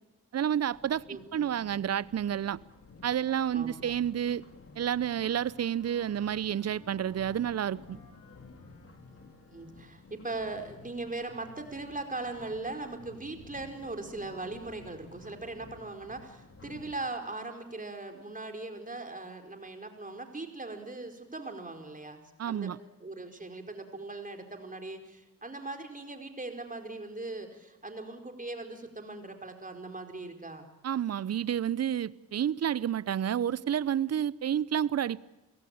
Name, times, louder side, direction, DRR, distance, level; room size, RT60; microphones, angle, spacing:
voice 1, 0.3-1.0 1.3-2.6 3.0-4.4 4.8-8.0 22.4-22.8 30.8-35.2, right 9 dB, 45° right, 0.8 m, -30 dB
sound 1, 0.7-17.0, left 3 dB, 40° left, 3.9 m, -53 dB
voice 2, 1.1-1.5 3.5-3.9 9.5-22.7 23.0-30.7, right 2 dB, 20° right, 4.5 m, -40 dB
Wind instrument woodwind instrument, 4.7-10.1, left 6 dB, 90° left, 3.9 m, -59 dB
28.5 x 16.5 x 8.8 m
hypercardioid pair, 45°, 36 cm